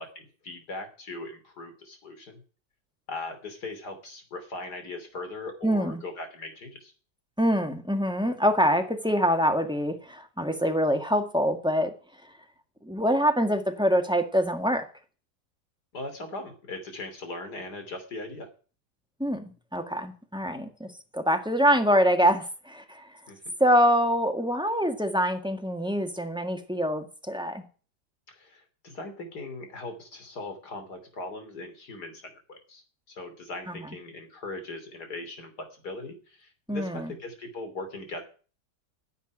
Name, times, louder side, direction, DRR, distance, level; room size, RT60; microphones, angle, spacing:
voice 1, 0.0-2.4 3.1-6.9 15.9-18.5 23.3-23.4 28.3-38.2, left 2 dB, 65° left, 7 dB, 3.6 m, -39 dB
voice 2, 5.6-6.0 7.4-11.9 12.8-14.8 19.2-20.9 21.1-23.1 23.6-27.6 33.7-33.9 36.7-37.1, equal, 5° right, 6 dB, 1.6 m, -25 dB
10.5 x 8.0 x 9.7 m, 0.38 s
omnidirectional pair, 1.9 m